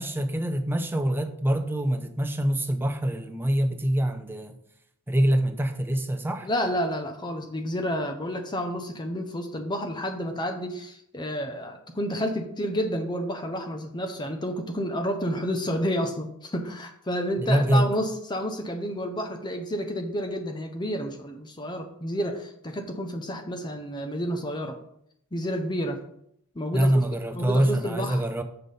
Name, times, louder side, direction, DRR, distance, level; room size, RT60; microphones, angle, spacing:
voice 1, 0.0-4.6 5.1-6.5 17.4-17.9 26.7-28.4, right 1 dB, 10° right, 0.6 m, -25 dB
voice 2, 6.4-24.8 25.3-26.0 26.6-28.2, equal, 20° left, 0.7 m, -30 dB
6.7 x 6.0 x 5.4 m
head